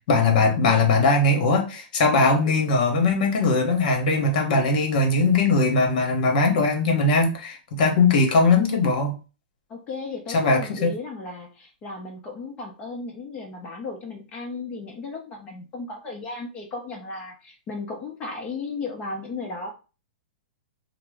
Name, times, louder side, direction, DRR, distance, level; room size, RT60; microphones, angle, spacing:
voice 1, 0.1-9.1 10.3-10.9, left 3 dB, 55° left, 1.0 m, -20 dB
voice 2, 9.7-19.7, left 3 dB, 20° left, 0.7 m, -35 dB
2.8 x 2.0 x 3.5 m
hypercardioid pair, 150°, 5 cm